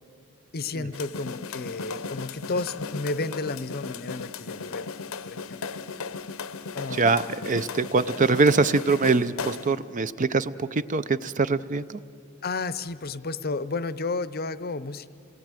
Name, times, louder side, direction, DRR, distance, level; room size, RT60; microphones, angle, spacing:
voice 1, 0.5-4.9 5.2-5.7 6.7-7.5 12.4-15.1, left 3 dB, 45° left, 15 dB, 0.7 m, -32 dB
sound 1, 0.9-9.8, left 4 dB, 85° left, 0.8 m, -36 dB
voice 2, 6.9-12.0, right 4 dB, 35° right, 14 dB, 0.5 m, -23 dB
28.0 x 18.5 x 8.9 m, 2.6 s
head